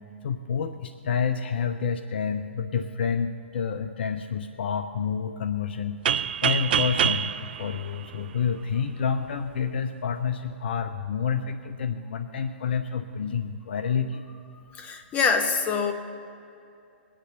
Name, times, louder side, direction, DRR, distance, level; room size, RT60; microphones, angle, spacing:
voice 1, 0.2-14.2, left 6 dB, 60° left, 9 dB, 0.7 m, -29 dB
sound 1, 6.1-8.8, right 9 dB, 55° right, 0.5 m, -26 dB
voice 2, 14.7-15.9, left 5 dB, 25° left, 5 dB, 1.4 m, -25 dB
21.5 x 8.8 x 4.0 m, 2.6 s
figure-of-eight pair, 115°, 6 cm